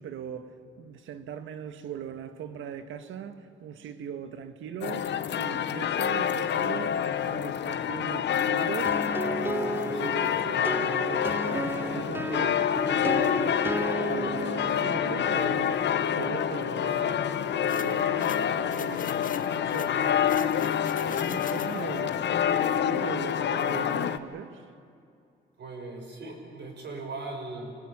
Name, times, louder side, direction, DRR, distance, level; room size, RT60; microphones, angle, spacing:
voice 1, 0.0-9.0 9.3-13.6 14.0-15.8 16.1-17.2 17.5-19.2 19.5-20.6 21.2-24.6, right 8 dB, 80° right, 1.6 m, -39 dB
sound 1, 4.8-24.2, left 9 dB, 65° left, 1.1 m, -27 dB
sound 2, 8.8-18.4, right 2 dB, 10° right, 0.5 m, -35 dB
sound 3, 17.7-22.0, left 7 dB, 45° left, 0.8 m, -42 dB
voice 2, 25.6-27.7, right 3 dB, 60° right, 6.5 m, -38 dB
26.0 x 18.5 x 8.7 m
cardioid pair, 90°, 20 cm